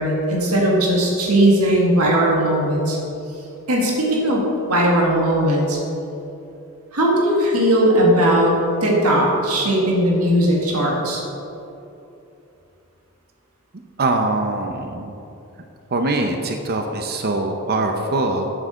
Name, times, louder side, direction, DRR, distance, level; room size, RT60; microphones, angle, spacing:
voice 1, 0.0-3.0 3.7-5.8 6.9-11.2, right 1 dB, 75° right, -2 dB, 1.9 m, -18 dB
voice 2, 14.0-15.1 15.9-18.5, right 2 dB, 45° right, 4 dB, 0.7 m, -22 dB
8.1 x 7.6 x 6.3 m, 2.8 s
head